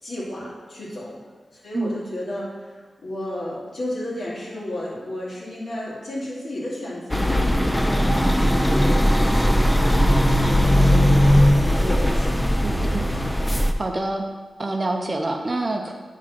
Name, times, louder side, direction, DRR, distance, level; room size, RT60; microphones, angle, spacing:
voice 1, 0.0-1.2 1.5-9.8 10.3-11.2 11.5-12.9, left 1 dB, 55° left, -6 dB, 2.6 m, -33 dB
sound 1, 7.1-13.7, equal, 5° left, 0.5 m, -18 dB
voice 2, 12.6-13.1 13.5-14.2 14.6-16.0, right 2 dB, 30° right, 3 dB, 0.7 m, -27 dB
9.4 x 3.7 x 5.8 m, 1.3 s
wide cardioid pair, 115°, 0 cm